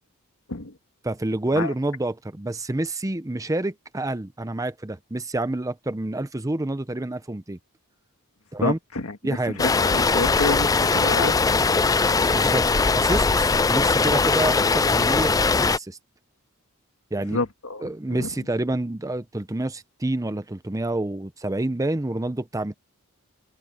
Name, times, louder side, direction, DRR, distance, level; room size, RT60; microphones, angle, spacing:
voice 1, 1.0-7.6 8.5-8.8 9.2-9.6 12.3-16.0 17.1-17.4 17.8-22.7, right 2 dB, 15° right, 0.7 m, -28 dB
voice 2, 8.6-11.3 17.3-18.3, left 3 dB, 70° left, 2.0 m, -29 dB
sound 1, 9.6-15.8, left 4 dB, 15° left, 0.4 m, -20 dB
head